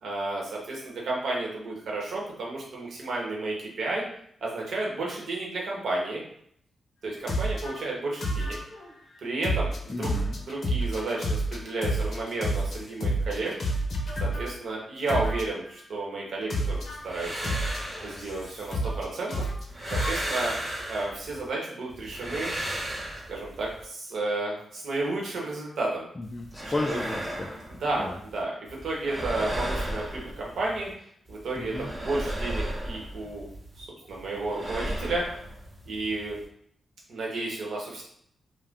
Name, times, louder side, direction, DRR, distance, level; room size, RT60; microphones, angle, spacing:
voice 1, 0.0-4.0 4.4-6.2 7.0-8.6 9.2-13.5 14.2-17.5 18.0-19.4 19.9-20.6 20.9-22.5 23.3-26.1 26.6-27.0 27.8-30.9 31.3-33.5 33.8-35.3 35.9-36.4 37.1-38.0, right 2 dB, 75° right, -3 dB, 1.0 m, -32 dB
sound 1, 7.3-7.7 8.2-8.9 9.4-14.5 15.1-15.6 16.5-17.0 17.4-19.0 19.3-20.1, right 1 dB, 55° left, 0.6 m, -29 dB
voice 2, 9.9-10.4 26.2-27.5 28.0-28.2 31.6-31.9, left 2 dB, 20° left, -1 dB, 0.3 m, -33 dB
sound 2, 16.9-19.1 19.5-21.5 21.9-23.8 26.2-28.4 28.7-30.9 31.3-33.8 34.1-36.5, right 1 dB, 25° right, 0.7 m, -35 dB
2.5 x 2.1 x 3.5 m, 0.67 s
cardioid pair, 105°, 0 cm